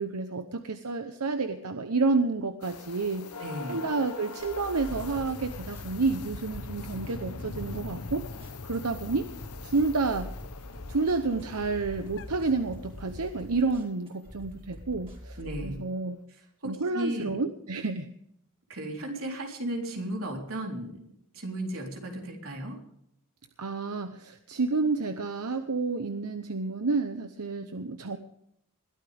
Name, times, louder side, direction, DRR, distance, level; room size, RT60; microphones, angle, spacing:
voice 1, 0.0-3.3 3.7-8.2 8.6-9.3 9.6-10.3 10.9-15.4 15.6-16.2 16.6-18.1 23.6-28.2, right 3 dB, 90° right, 8 dB, 0.9 m, -29 dB
sound 1, 2.6-13.2 15.3-15.4 15.9-16.0, left 5 dB, 85° left, 0.9 m, -45 dB
voice 2, 3.4-3.8 15.4-15.8 16.6-17.4 18.7-21.0 21.3-22.8, right 1 dB, 65° right, 1 dB, 3.9 m, -35 dB
sound 2, 4.4-15.7, equal, 25° right, 4.6 m, -45 dB
sound 3, 4.9-13.8, left 2 dB, 60° left, 0.8 m, -43 dB
21.5 x 13.0 x 3.5 m, 0.74 s
head